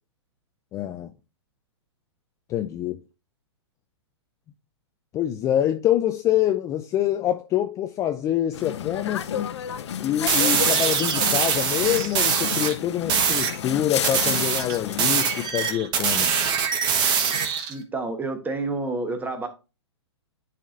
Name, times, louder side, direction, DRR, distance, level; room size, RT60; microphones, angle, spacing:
voice 1, 0.7-1.1 2.5-3.0 5.1-9.5 10.0-16.3, left 11 dB, 20° left, 0.4 m, -25 dB
sound 1, 8.5-15.5, left 9 dB, 70° left, 0.6 m, -32 dB
sound 2, 10.3-12.7 13.1-13.6 14.0-17.7, right 6 dB, 30° right, 1.2 m, -23 dB
voice 2, 17.7-19.5, right 3 dB, 10° right, 1.2 m, -29 dB
11.0 x 4.2 x 2.5 m
hypercardioid pair, 125°, 15 cm